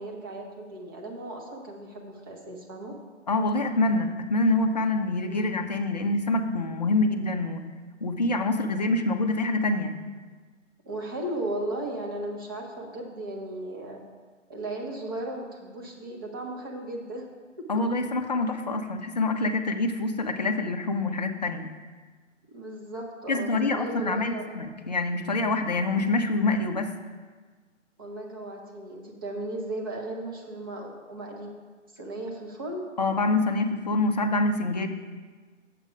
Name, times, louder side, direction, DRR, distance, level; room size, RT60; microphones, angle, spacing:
voice 1, 0.0-3.0 5.2-5.5 10.9-14.0 14.5-17.3 17.6-17.7 22.5-24.4 28.0-31.5 31.9-32.9, right 1 dB, 20° right, 0 dB, 0.8 m, -36 dB
voice 2, 3.3-7.7 8.0-10.0 17.7-21.7 23.3-26.9 33.0-34.9, left 2 dB, 35° left, 5 dB, 0.6 m, -26 dB
7.5 x 7.1 x 5.1 m, 1.5 s
figure-of-eight pair, 145°, 38 cm